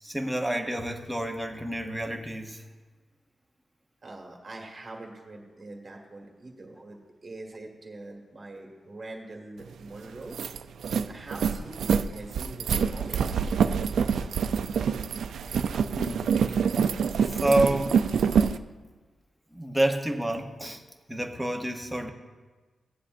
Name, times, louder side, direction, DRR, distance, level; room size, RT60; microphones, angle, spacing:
voice 1, 0.0-2.6 16.0-16.3 17.2-18.0 19.5-20.8 21.1-22.1, right 1 dB, 5° right, 3 dB, 0.8 m, -28 dB
voice 2, 4.0-10.4 11.1-13.4, right 2 dB, 30° right, 1 dB, 1.8 m, -44 dB
sound 1, 9.7-9.8 10.1-18.6, right 7 dB, 85° right, 0.4 m, -26 dB
16.0 x 9.9 x 2.6 m, 1.3 s
wide cardioid pair, 145°, 0 cm